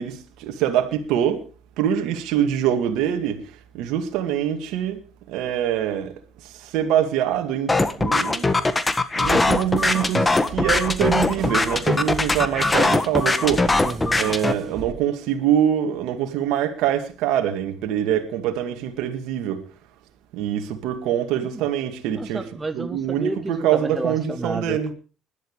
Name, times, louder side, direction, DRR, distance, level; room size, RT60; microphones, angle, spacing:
voice 1, 0.0-1.4 1.8-3.4 3.7-5.0 5.3-6.1 6.4-8.5 9.2-13.7 14.1-19.6 20.3-22.4 22.7-24.9, right 10 dB, 75° right, 2.1 m, -24 dB
sound 1, 7.7-14.5, left 2 dB, 20° left, 1.5 m, -21 dB
sound 2, 9.2-14.9, right 5 dB, 50° right, 2.1 m, -37 dB
voice 2, 13.8-14.2 21.4-21.6 22.1-24.9, right 3 dB, 20° right, 1.1 m, -31 dB
20.5 x 12.0 x 3.3 m
supercardioid pair, 70°, 0 cm